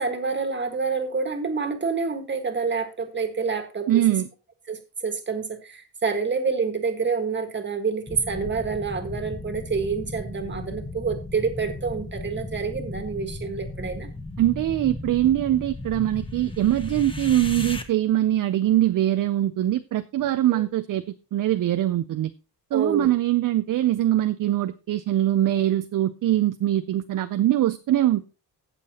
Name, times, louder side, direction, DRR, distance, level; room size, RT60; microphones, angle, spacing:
voice 1, 0.0-4.0 4.7-14.1 20.5-20.6 22.7-23.1, right 5 dB, 25° right, 7 dB, 1.6 m, -28 dB
voice 2, 3.9-4.3 14.4-21.0 21.3-22.3 22.7-28.3, right 13 dB, 55° right, 11 dB, 0.5 m, -22 dB
sound 1, 8.1-17.8, left 2 dB, 15° left, 0.9 m, -35 dB
16.0 x 6.7 x 2.9 m, 0.31 s
cardioid pair, 150°, 40 cm